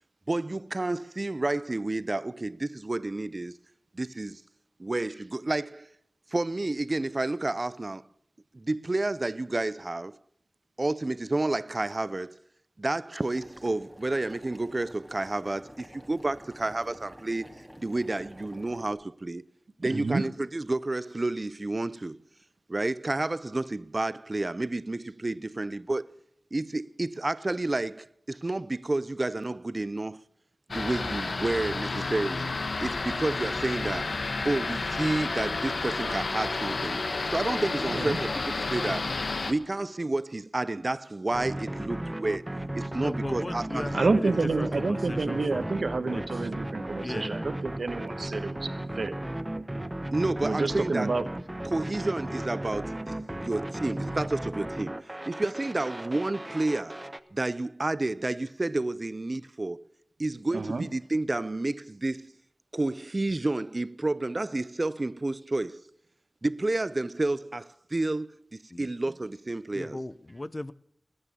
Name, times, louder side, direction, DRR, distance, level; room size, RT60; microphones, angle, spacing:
voice 1, 0.3-3.6 3.9-4.4 4.8-5.9 6.3-8.1 8.5-10.2 10.8-12.4 12.8-19.4 19.8-22.2 22.7-26.1 26.5-30.2 30.7-32.5 32.8-34.2 34.4-39.2 39.4-42.5 42.7-44.4 50.1-51.1 51.6-57.0 57.3-59.8 60.2-62.3 62.7-65.9 66.4-70.0, right 2 dB, 45° right, 0.6 m, -30 dB
Boiling, 13.2-18.9, equal, ahead, 2.9 m, -49 dB
voice 2, 19.8-20.2 37.9-38.2 43.9-49.1 50.4-51.2 60.5-60.9, right 3 dB, 80° right, 1.2 m, -29 dB
sound 1, 30.7-39.5, left 3 dB, 80° left, 1.1 m, -31 dB
sound 2, 41.3-57.2, right 1 dB, 20° right, 0.9 m, -35 dB
voice 3, 43.0-46.5 47.0-47.5 68.7-68.9 69.7-70.7, left 2 dB, 40° left, 0.7 m, -37 dB
20.5 x 8.8 x 6.7 m
wide cardioid pair, 50°, 0 cm